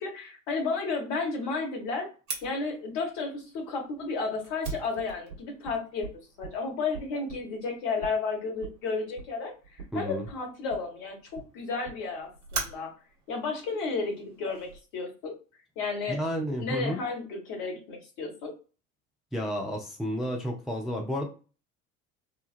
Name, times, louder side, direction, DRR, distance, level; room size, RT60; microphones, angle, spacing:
voice 1, 0.0-2.1 2.4-6.1 6.4-12.9 13.3-15.3 15.8-16.2 16.6-18.5, left 4 dB, 50° left, 1 dB, 1.2 m, -32 dB
Fire, 2.3-14.8, right 4 dB, 45° right, 1.1 m, -43 dB
voice 2, 9.9-10.2 16.1-17.0 19.3-21.3, equal, ahead, 0 dB, 0.4 m, -31 dB
3.2 x 2.2 x 2.4 m, 0.34 s
figure-of-eight pair, 65°, 39 cm